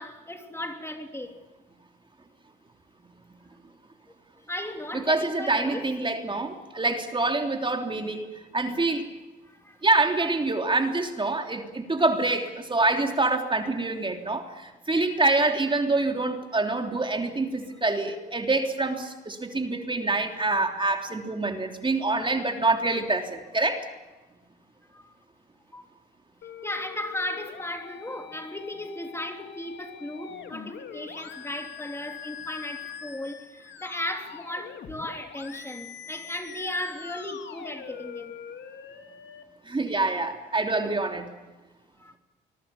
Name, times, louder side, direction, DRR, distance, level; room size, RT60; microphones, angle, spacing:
voice 1, 0.0-1.4 4.4-5.8 9.4-9.8 24.9-25.1 25.7-25.9 26.6-38.3 42.0-42.1, left 1 dB, 10° left, 5 dB, 3.3 m, -36 dB
voice 2, 4.9-8.3 8.5-9.1 9.8-23.8 39.7-41.3, right 3 dB, 25° right, 4 dB, 3.2 m, -26 dB
sound 1, 26.4-39.4, left 8 dB, 60° left, 2.6 m, -43 dB
25.0 x 22.5 x 7.1 m, 1.1 s
supercardioid pair, 60°, 21 cm